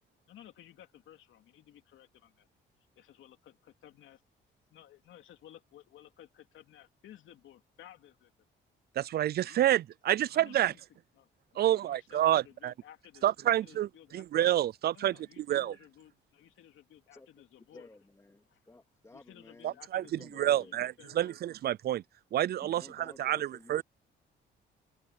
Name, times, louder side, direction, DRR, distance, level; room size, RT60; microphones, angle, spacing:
voice 1, 0.3-2.5 3.0-4.2 4.7-8.3 9.4-9.8 10.3-10.8 11.2-14.3 14.9-17.9 18.5-18.6 19.1-21.3, left 11 dB, 80° left, 2.9 m, -56 dB
voice 2, 9.0-10.7 11.6-12.7 13.2-15.7 19.6-22.0 22.3-23.8, right 12 dB, 55° right, 0.4 m, -29 dB
voice 3, 17.7-20.8 22.6-23.8, left 2 dB, 15° left, 2.4 m, -54 dB
open air
cardioid pair, 90°, 20 cm